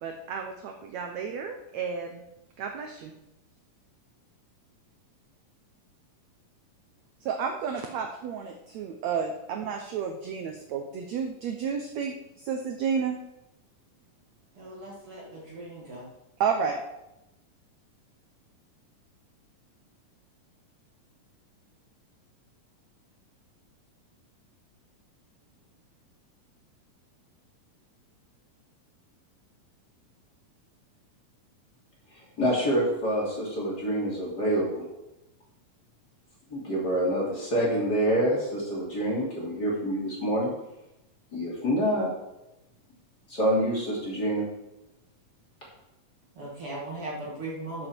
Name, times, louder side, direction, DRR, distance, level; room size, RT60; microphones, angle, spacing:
voice 1, 0.0-2.2 2.6-3.1 7.2-13.2 16.4-16.8, right 6 dB, 75° right, 4 dB, 1.7 m, -31 dB
voice 2, 14.6-16.1 46.4-47.9, right 2 dB, 45° right, -4 dB, 2.3 m, -38 dB
voice 3, 32.4-34.8 36.5-40.5 41.3-42.1 43.3-44.4, equal, 30° left, -5 dB, 3.3 m, -26 dB
13.0 x 7.2 x 4.5 m, 0.91 s
omnidirectional pair, 4.1 m